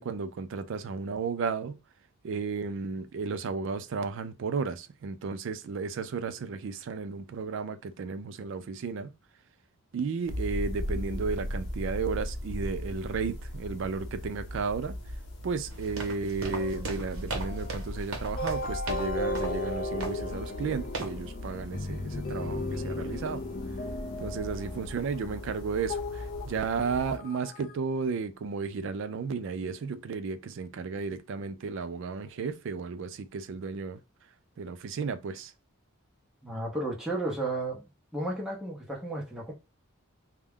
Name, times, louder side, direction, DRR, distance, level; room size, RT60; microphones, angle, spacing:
voice 1, 0.0-1.8 2.2-9.1 9.9-15.0 15.4-23.4 24.2-34.0 34.6-35.5, right 5 dB, 60° right, 0.3 m, -33 dB
sound 1, 10.3-27.2, left 1 dB, 75° left, 0.8 m, -38 dB
sound 2, 15.7-19.1 19.3-19.6 20.0-20.3 20.9-21.2, right 3 dB, 80° right, 0.7 m, -38 dB
sound 3, 16.5-27.8, left 2 dB, 40° left, 0.3 m, -36 dB
voice 2, 36.4-37.8 38.1-39.5, right 2 dB, 5° right, 0.7 m, -33 dB
2.2 x 2.0 x 3.4 m
head